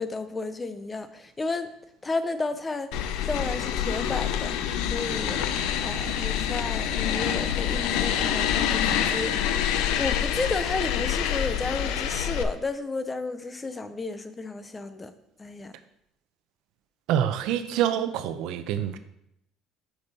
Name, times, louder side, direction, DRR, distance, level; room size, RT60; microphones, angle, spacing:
voice 1, 0.0-1.7 2.0-4.5 4.8-5.4 5.8-9.7 10.0-15.1 15.4-15.7, left 3 dB, 15° left, 10 dB, 0.5 m, -32 dB
sound 1, 2.9-12.4, left 9 dB, 85° left, 0.6 m, -26 dB
voice 2, 17.1-19.0, right 10 dB, 70° right, 11 dB, 0.6 m, -26 dB
6.6 x 6.0 x 4.1 m, 0.78 s
cardioid pair, 150°, 0 cm